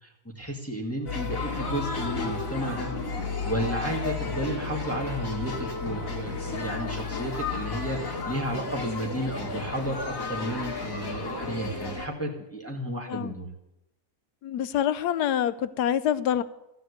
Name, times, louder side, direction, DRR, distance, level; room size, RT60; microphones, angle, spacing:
voice 1, 0.0-2.9 3.4-13.5, right 1 dB, 10° left, -1 dB, 1.8 m, -33 dB
sound 1, 1.1-12.1, left 4 dB, 55° left, 2.5 m, -32 dB
voice 2, 14.4-16.4, left 10 dB, 90° left, 15 dB, 1.3 m, -26 dB
15.5 x 7.9 x 8.1 m, 0.89 s
omnidirectional pair, 1.7 m